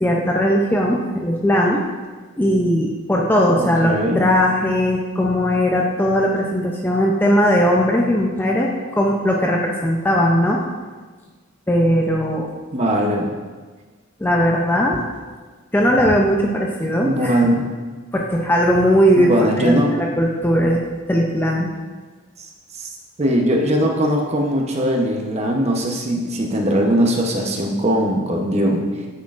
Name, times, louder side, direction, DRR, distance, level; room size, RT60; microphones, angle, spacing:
voice 1, 0.0-1.8 2.4-10.6 11.7-12.5 14.2-15.0 15.7-17.4 18.1-20.8 21.1-21.7, equal, 10° left, -1 dB, 0.4 m, -18 dB
voice 2, 3.5-4.2 12.7-13.3 17.0-17.7 19.1-19.9 22.4-22.5 22.8-22.9 23.2-29.1, equal, 30° right, 0 dB, 0.8 m, -20 dB
9.5 x 6.2 x 2.5 m, 1.4 s
head